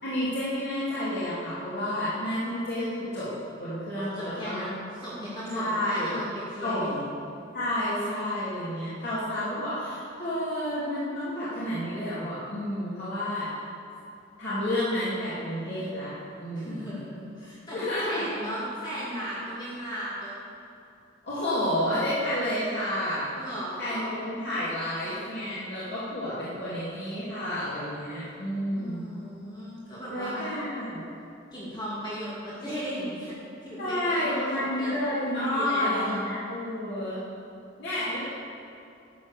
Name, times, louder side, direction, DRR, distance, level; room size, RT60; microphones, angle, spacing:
voice 1, 0.0-3.3 3.6-4.6 5.5-6.1 6.6-7.1 7.5-13.5 14.4-16.1 16.4-17.0 17.7-18.3 21.2-23.3 23.8-29.1 30.1-31.0 33.8-37.2 37.8-38.2, left 1 dB, 60° left, -12 dB, 2.8 m, -30 dB
voice 2, 4.0-6.9 16.5-17.8 18.0-20.4 23.4-24.1 28.7-30.5 31.5-33.3 33.6-35.0 35.4-36.2, equal, 25° left, -9 dB, 2.4 m, -36 dB
11.5 x 7.4 x 6.9 m, 2.6 s
head